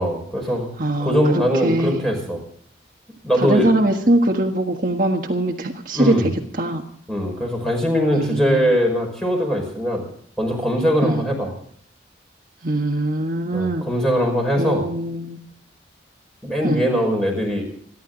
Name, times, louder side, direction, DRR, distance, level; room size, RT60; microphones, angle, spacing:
voice 1, 0.0-0.7 1.0-2.4 3.2-3.7 5.9-6.3 7.1-10.0 10.4-11.5 13.5-14.8 16.4-17.6, equal, 5° left, 1 dB, 5.5 m, -21 dB
voice 2, 0.8-2.0 3.4-6.8 8.1-8.7 11.0-11.2 12.6-13.9 14.6-15.4 16.6-16.8, right 1 dB, 45° right, 2 dB, 1.5 m, -22 dB
29.5 x 11.5 x 4.0 m, 0.62 s
head